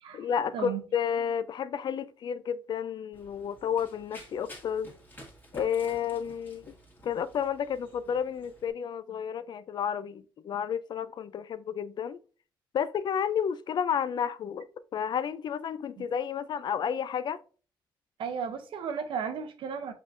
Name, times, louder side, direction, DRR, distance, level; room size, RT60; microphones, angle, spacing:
voice 1, 0.1-4.9 5.5-6.7 7.0-12.2 12.7-14.7 14.9-17.4, left 8 dB, 60° left, 0.4 m, -31 dB
Run, 3.1-8.7, left 1 dB, 20° left, 1.7 m, -51 dB
voice 2, 18.2-19.9, right 7 dB, 80° right, 0.7 m, -34 dB
5.2 x 3.6 x 2.6 m
cardioid pair, 85°, 9 cm